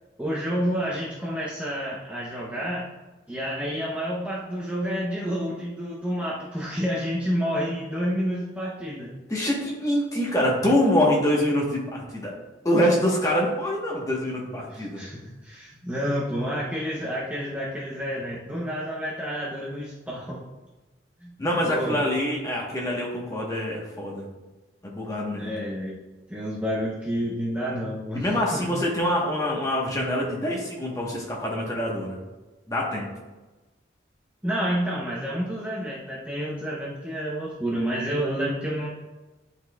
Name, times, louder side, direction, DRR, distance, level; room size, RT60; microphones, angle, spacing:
voice 1, 0.2-2.9 3.3-9.1 14.7-20.4 21.2-21.3 21.6-22.0 25.4-26.0 26.3-28.7 34.4-38.9, equal, 5° right, -6 dB, 0.7 m, -29 dB
voice 2, 9.3-12.3 12.6-15.0 21.4-24.3 24.8-25.5 28.1-32.2 32.7-33.1, left 1 dB, 20° left, -2 dB, 1.1 m, -25 dB
10.5 x 4.1 x 2.3 m, 1.2 s
head